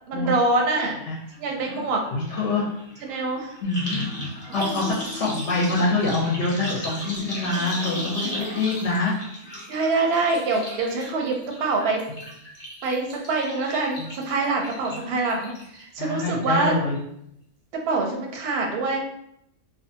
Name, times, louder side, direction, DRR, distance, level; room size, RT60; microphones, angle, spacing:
voice 1, 0.1-1.0 1.4-2.0 3.0-3.6 4.7-4.8 9.7-12.0 12.8-15.5 15.8-16.7 17.7-19.0, right 3 dB, 65° right, 1 dB, 0.7 m, -25 dB
sound 1, 0.8-0.9 1.2-15.8 16.2-16.7 17.0-17.1, left 1 dB, 35° left, 0.7 m, -36 dB
voice 2, 2.1-2.7 3.6-4.1 4.5-9.1 14.0-14.1 14.9-15.0 16.0-16.9, left 2 dB, 65° left, -3 dB, 0.9 m, -25 dB
2.5 x 2.2 x 2.6 m, 0.75 s
omnidirectional pair, 1.4 m